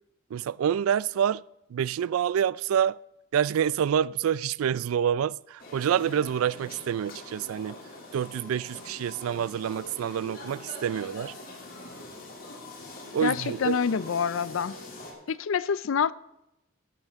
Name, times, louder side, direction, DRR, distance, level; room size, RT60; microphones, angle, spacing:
voice 1, 0.3-1.4 1.7-3.0 3.3-7.8 8.1-11.3 13.1-13.8, right 9 dB, 90° right, 0.3 m, -27 dB
sound 1, 5.6-15.1, left 2 dB, 45° left, 2.6 m, -43 dB
voice 2, 13.2-14.8 15.3-16.1, left 6 dB, 75° left, 0.4 m, -27 dB
13.0 x 12.0 x 3.6 m
head